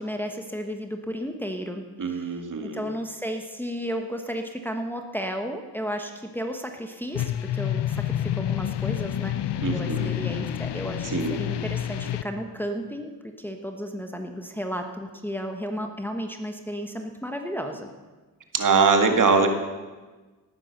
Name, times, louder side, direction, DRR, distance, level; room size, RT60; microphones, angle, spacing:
voice 1, 0.0-17.9, equal, 5° left, 4 dB, 1.3 m, -33 dB
voice 2, 2.0-2.8 9.6-10.1 11.0-11.4 18.5-19.5, right 4 dB, 50° right, 5 dB, 2.1 m, -22 dB
sound 1, 7.1-12.2, left 11 dB, 75° left, 0.8 m, -28 dB
18.5 x 9.4 x 6.6 m, 1.3 s
cardioid pair, 95°, 41 cm